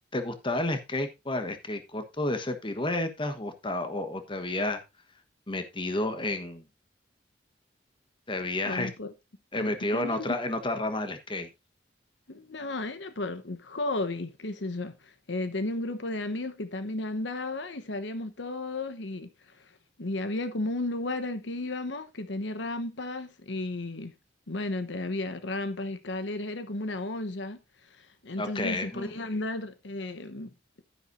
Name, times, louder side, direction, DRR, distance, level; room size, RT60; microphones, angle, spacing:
voice 1, 0.1-4.8 5.5-6.6 8.3-8.9 9.5-11.5 28.4-29.1, left 2 dB, 25° left, 1.3 m, -31 dB
voice 2, 8.6-9.1 9.6-10.4 12.3-19.7 20.0-24.1 24.5-30.8, left 2 dB, 75° left, 1.0 m, -34 dB
11.5 x 10.0 x 2.7 m
head